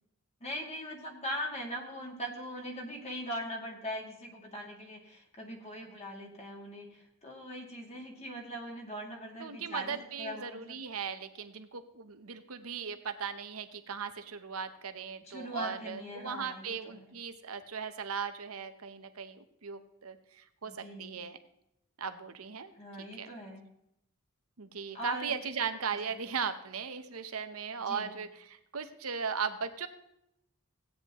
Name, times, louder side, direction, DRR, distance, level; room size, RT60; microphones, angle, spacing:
voice 1, 0.4-10.8 15.2-17.2 20.7-21.2 22.7-23.7 24.9-25.3 27.8-28.2, equal, 30° left, 0 dB, 2.3 m, -41 dB
voice 2, 9.4-21.4 22.0-22.7 23.0-23.3 24.6-29.9, right 6 dB, 80° right, 9 dB, 0.9 m, -38 dB
16.0 x 9.5 x 3.1 m, 0.79 s
head